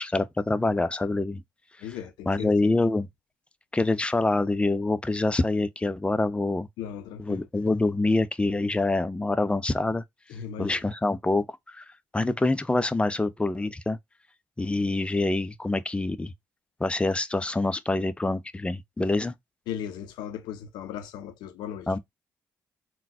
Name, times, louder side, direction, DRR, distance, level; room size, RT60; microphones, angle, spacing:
voice 1, 0.0-1.4 1.9-2.0 2.3-3.1 3.7-6.7 7.2-10.0 10.6-11.8 12.1-14.0 14.6-16.3 16.8-19.3 21.9-22.0, left 2 dB, 15° left, 0.5 m, -26 dB
voice 2, 1.8-2.7 6.8-7.5 10.3-10.8 19.7-21.9, left 9 dB, 80° left, 0.5 m, -37 dB
3.8 x 2.2 x 2.6 m
hypercardioid pair, 45°, 7 cm